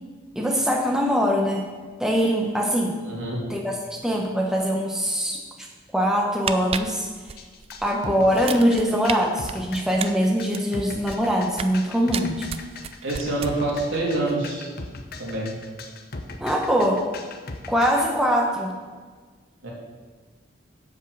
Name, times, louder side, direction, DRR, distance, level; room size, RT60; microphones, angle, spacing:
voice 1, 0.4-1.7 2.0-3.0 3.5-5.4 5.9-7.1 7.8-12.5 16.4-17.0 17.7-18.8, equal, 5° right, 0 dB, 0.9 m, -22 dB
voice 2, 3.0-3.4 13.0-14.7 15.2-15.6 19.6-19.7, right 2 dB, 80° right, -4 dB, 3.1 m, -26 dB
sound 1, 6.2-7.9 8.3-9.1 9.5-11.8 12.1-13.9 14.1-14.3, right 7 dB, 30° right, 0.4 m, -33 dB
sound 2, 7.4-18.1, left 3 dB, 50° left, 0.8 m, -38 dB
8.2 x 7.3 x 6.6 m, 1.4 s
head